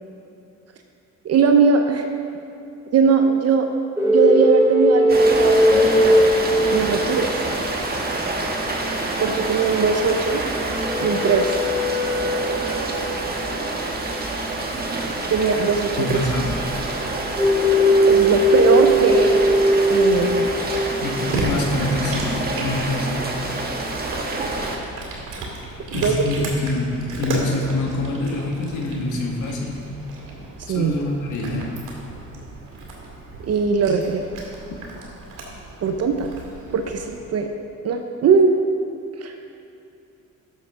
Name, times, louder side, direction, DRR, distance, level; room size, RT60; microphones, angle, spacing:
voice 1, 1.2-2.0 2.9-3.7 4.0-6.2 6.7-7.3 9.2-10.4 11.0-11.6 15.3-16.2 17.6-17.8 18.1-19.6 19.9-20.5 25.9-26.3 30.7-30.9 33.5-34.2 35.8-36.3 36.7-37.5 37.8-38.6 39.2-39.3, right 5 dB, 55° right, 5 dB, 0.7 m, -20 dB
sound 1, 4.0-7.1 10.7-13.3 17.4-21.2, equal, 10° right, 2.1 m, -19 dB
Rain, 5.1-24.8, right 2 dB, 30° right, 1.4 m, -27 dB
voice 2, 16.0-16.6 21.0-23.3 25.9-29.8 30.7-31.8, left 2 dB, 75° left, 0 dB, 1.5 m, -25 dB
Cat, 20.1-37.2, right 2 dB, 90° right, 2.3 m, -34 dB
11.5 x 7.5 x 3.7 m, 2.8 s
cardioid pair, 90°, 30 cm